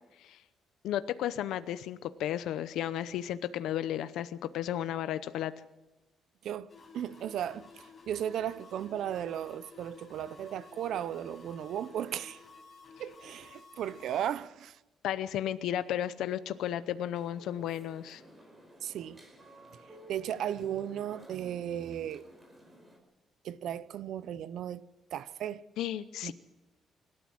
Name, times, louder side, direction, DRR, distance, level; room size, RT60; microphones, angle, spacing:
voice 1, 0.8-5.5 15.0-18.2 25.8-26.3, left 11 dB, 85° left, 0.7 m, -33 dB
voice 2, 6.4-12.4 13.0-14.8 18.8-19.2 20.1-22.2 23.4-25.6 26.2-26.3, right 10 dB, 65° right, 0.8 m, -36 dB
unalive serum, 6.7-14.2, left 4 dB, 25° left, 6.0 m, -53 dB
sound 1, 17.1-23.0, equal, 15° right, 4.8 m, -54 dB
25.5 x 13.0 x 7.9 m
cardioid pair, 160°, 0 cm